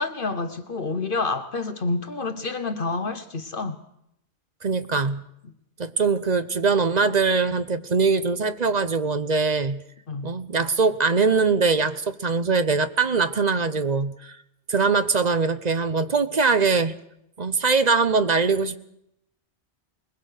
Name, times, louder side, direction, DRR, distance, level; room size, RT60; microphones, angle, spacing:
voice 1, 0.0-3.8 10.1-10.3, left 3 dB, 55° left, 1.2 m, -28 dB
voice 2, 4.6-5.2 5.8-9.8 10.2-14.3 14.7-16.9 17.4-18.8, right 4 dB, 40° right, 1.0 m, -22 dB
21.0 x 21.0 x 6.6 m
omnidirectional pair, 1.1 m